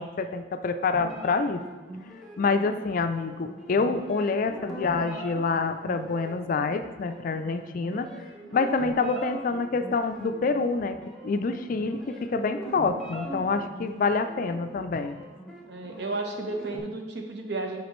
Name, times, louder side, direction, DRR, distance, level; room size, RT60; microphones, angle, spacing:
voice 1, 0.0-1.6 2.4-8.1 8.5-11.0 11.2-15.2, left 4 dB, 50° left, 8 dB, 0.4 m, -27 dB
sound 1, 0.9-16.8, right 1 dB, ahead, 1.1 m, -42 dB
voice 2, 15.6-17.8, right 2 dB, 65° right, 3 dB, 0.9 m, -33 dB
8.1 x 5.1 x 3.1 m, 1.2 s
head